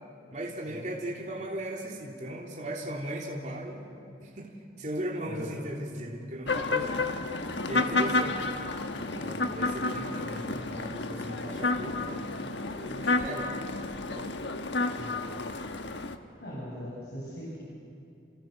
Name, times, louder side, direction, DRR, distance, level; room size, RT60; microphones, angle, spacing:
voice 1, 0.3-7.1 7.7-8.6 9.1-13.5 14.1-14.3, right 1 dB, 40° right, -1 dB, 3.3 m, -38 dB
voice 2, 5.3-5.7 14.8-15.2 16.4-17.6, equal, 65° left, -5 dB, 7.0 m, -40 dB
sound 1, 6.5-16.2, left 3 dB, 80° left, 1.3 m, -31 dB
29.5 x 29.5 x 6.6 m, 2.6 s
head